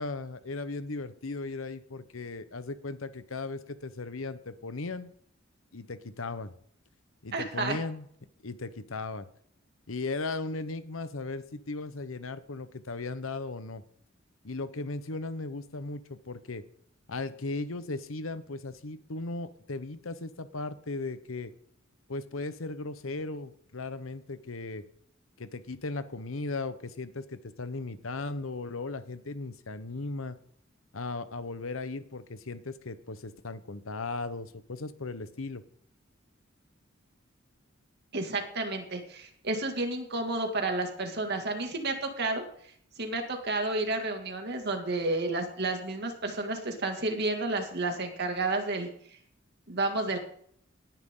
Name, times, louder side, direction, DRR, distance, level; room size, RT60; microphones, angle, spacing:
voice 1, 0.0-5.1 5.7-6.5 7.2-8.1 8.4-9.3 9.9-13.8 14.4-16.6 17.1-21.5 22.1-24.8 25.4-30.4 30.9-35.6, left 3 dB, 85° left, 12 dB, 1.1 m, -37 dB
voice 2, 7.3-7.8 38.1-42.4 43.0-48.9 49.7-50.2, right 2 dB, 55° right, 4 dB, 2.4 m, -31 dB
18.5 x 10.5 x 3.9 m, 0.64 s
head